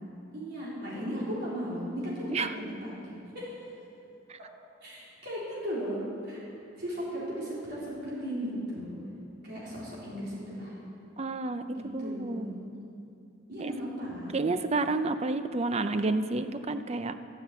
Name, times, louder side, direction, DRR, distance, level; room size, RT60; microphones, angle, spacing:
voice 1, 0.3-3.5 4.8-6.0 6.2-6.4 6.8-9.0 9.4-10.8 11.7-12.7 13.5-14.4, equal, 55° right, -8 dB, 3.9 m, -36 dB
voice 2, 11.2-12.5 13.6-13.7 14.3-17.1, right 3 dB, 30° right, 10 dB, 0.5 m, -30 dB
12.5 x 9.7 x 8.3 m, 2.7 s
head